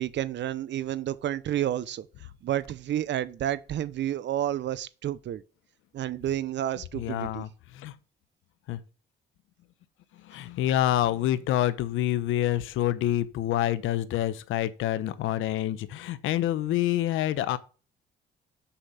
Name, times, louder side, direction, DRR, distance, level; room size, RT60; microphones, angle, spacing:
voice 1, 0.0-5.4 5.9-7.4, right 12 dB, 65° right, 0.7 m, -30 dB
voice 2, 6.9-7.5 7.7-7.9 8.7-8.8 10.1-17.6, left 13 dB, 85° left, 0.8 m, -27 dB
7.0 x 5.3 x 7.0 m
cardioid pair, 90°, 20 cm